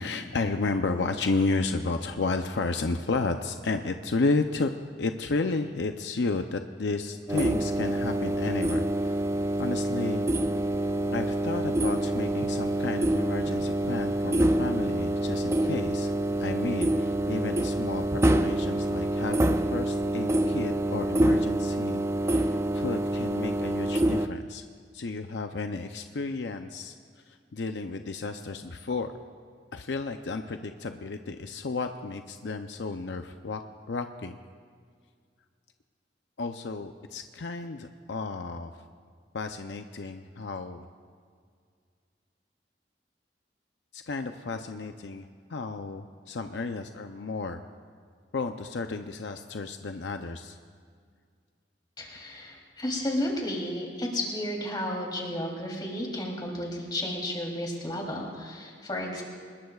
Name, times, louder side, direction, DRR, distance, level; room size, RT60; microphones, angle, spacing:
voice 1, 0.0-4.7 5.0-9.2 9.6-10.2 11.1-16.1 16.4-24.6 24.9-27.0 27.3-29.1 29.7-33.6 33.9-34.4 36.4-38.7 39.3-40.9 43.9-47.6 48.3-50.6, left 3 dB, 75° left, 6 dB, 0.6 m, -32 dB
sound 1, 7.3-24.3, right 1 dB, 15° right, 0.4 m, -26 dB
voice 2, 52.0-59.2, left 1 dB, 25° left, -1 dB, 3.2 m, -32 dB
25.5 x 20.5 x 2.4 m, 2.1 s
head